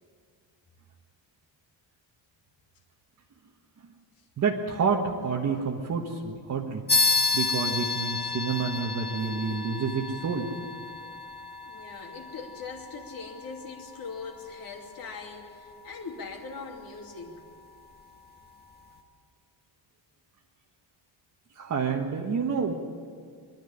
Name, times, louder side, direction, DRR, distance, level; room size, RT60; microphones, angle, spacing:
voice 1, 4.4-6.9 7.3-10.5 21.5-22.7, right 5 dB, 35° right, 0 dB, 1.5 m, -28 dB
sound 1, 6.9-16.9, left 4 dB, 20° left, 1.6 m, -32 dB
voice 2, 11.6-17.4, left 4 dB, 45° left, 1 dB, 2.8 m, -41 dB
23.5 x 12.0 x 10.0 m, 2.1 s
cardioid pair, 170°, 47 cm